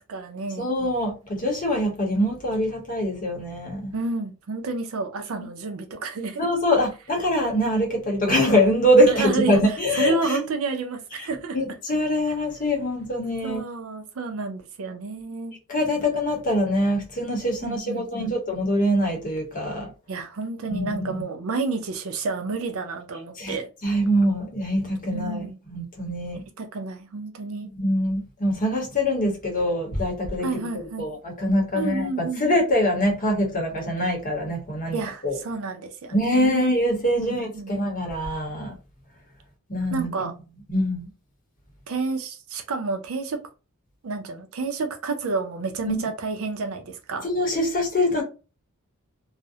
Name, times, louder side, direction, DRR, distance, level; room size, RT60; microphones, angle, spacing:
voice 1, 0.0-0.7 3.9-6.5 9.1-11.6 13.4-15.6 17.6-18.4 20.1-23.7 25.1-25.6 26.6-27.7 30.4-31.1 31.7-32.4 34.9-36.7 37.2-37.8 39.9-40.3 41.9-43.4 44.0-47.3, right 3 dB, 70° right, 0.5 m, -30 dB
voice 2, 0.6-3.9 6.4-10.4 11.2-11.3 11.5-13.6 15.7-19.9 20.7-21.2 23.4-23.5 23.8-26.4 27.7-35.4 36.1-38.7 39.7-40.3 40.7-41.1 45.9-46.0 47.2-48.2, equal, 40° left, 0.8 m, -24 dB
2.4 x 2.0 x 2.6 m
head